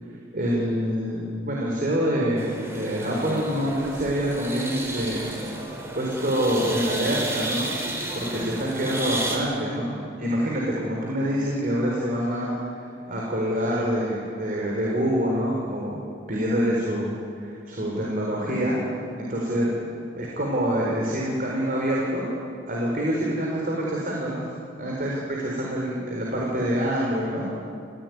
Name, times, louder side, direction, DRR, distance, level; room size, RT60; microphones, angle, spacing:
voice 1, 0.3-5.3 5.9-7.7 8.1-12.5 13.1-16.0 16.3-18.8 19.2-19.7 20.1-22.3 22.7-27.5, equal, 50° right, -3 dB, 4.5 m, -26 dB
sound 1, 2.4-9.4, right 2 dB, 15° right, 4.1 m, -32 dB
29.5 x 16.0 x 9.6 m, 2.5 s
head